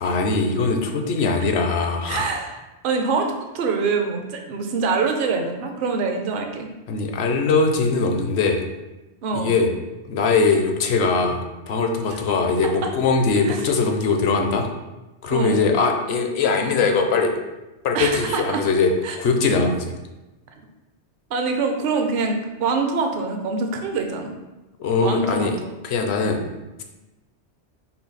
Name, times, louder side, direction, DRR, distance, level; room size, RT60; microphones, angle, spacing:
voice 1, 0.0-2.3 6.9-8.6 9.3-9.7 10.1-11.4 11.7-14.7 15.2-17.3 17.8-18.9 19.2-19.9 24.8-25.6 25.8-26.4, left 4 dB, 65° left, 4 dB, 0.8 m, -21 dB
voice 2, 2.1-2.6 2.8-6.7 9.2-9.5 12.8-12.9 13.4-13.6 15.3-15.6 17.9-18.6 19.0-19.2 21.3-24.3 25.0-25.7, right 4 dB, 55° right, 4 dB, 0.7 m, -24 dB
5.6 x 2.2 x 4.0 m, 1.0 s
omnidirectional pair, 1.2 m